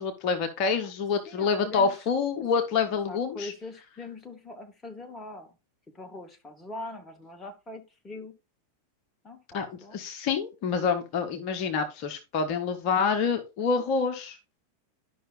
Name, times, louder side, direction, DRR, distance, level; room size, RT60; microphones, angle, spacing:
voice 1, 0.0-3.5 9.5-9.7 9.9-14.4, left 5 dB, 40° left, 6 dB, 0.9 m, -27 dB
voice 2, 1.2-1.9 2.9-5.5 5.9-8.3 9.2-10.0, left 2 dB, 15° left, 5 dB, 1.2 m, -42 dB
11.5 x 5.5 x 2.5 m, 0.27 s
figure-of-eight pair, 90°, 0 cm